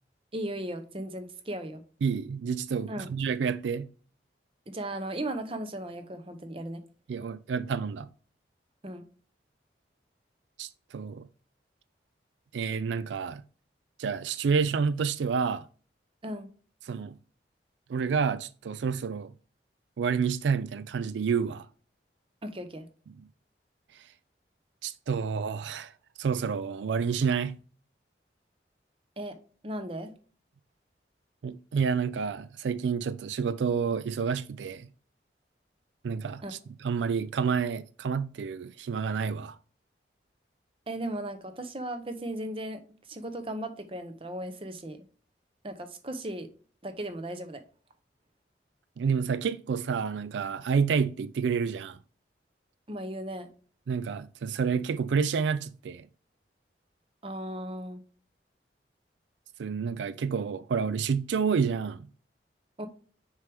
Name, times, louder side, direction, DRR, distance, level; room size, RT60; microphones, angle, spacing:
voice 1, 0.3-1.8 2.9-3.1 4.7-6.8 8.8-9.1 16.2-16.5 22.4-22.9 29.2-29.4 29.6-30.1 36.4-36.5 40.9-42.8 43.1-45.0 45.6-46.5 46.8-47.6 52.9-53.5 57.2-58.0 62.8-62.9, right 1 dB, 30° right, 0.8 m, -36 dB
voice 2, 2.0-3.9 7.1-8.1 10.6-11.3 12.5-13.4 14.0-15.7 16.9-17.2 17.9-19.3 20.0-21.7 23.9-24.1 24.8-25.9 26.2-27.6 31.4-34.9 36.0-39.6 49.0-52.0 53.9-56.1 59.6-62.1, right 6 dB, 85° right, 0.4 m, -29 dB
6.5 x 4.6 x 3.5 m
head